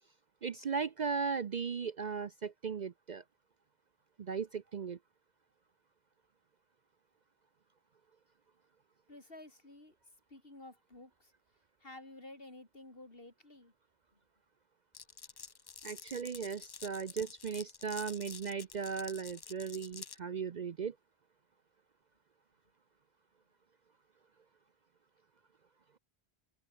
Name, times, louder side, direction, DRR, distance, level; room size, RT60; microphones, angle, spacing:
voice 1, 0.4-3.2 4.2-5.0 15.8-21.0, right 6 dB, 50° right, 0.7 m, -37 dB
voice 2, 9.1-10.0 10.3-11.3 11.8-13.7 14.1-14.2, left 2 dB, 60° left, 5.1 m, -52 dB
Glass, 14.9-20.2, left 5 dB, 40° left, 0.3 m, -49 dB
open air
omnidirectional pair, 1.1 m